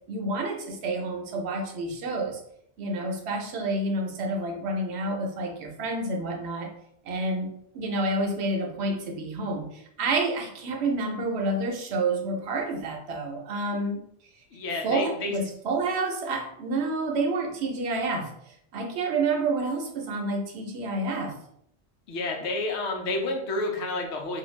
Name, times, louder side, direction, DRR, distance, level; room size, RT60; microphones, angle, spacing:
voice 1, 0.1-2.4 2.8-6.7 7.0-14.0 14.8-18.3 18.7-21.3, right 2 dB, 70° right, 2 dB, 0.9 m, -29 dB
voice 2, 14.5-15.4 18.9-19.0 22.1-24.4, left 2 dB, 75° left, 1 dB, 0.9 m, -30 dB
2.5 x 2.3 x 3.1 m, 0.70 s
omnidirectional pair, 1.2 m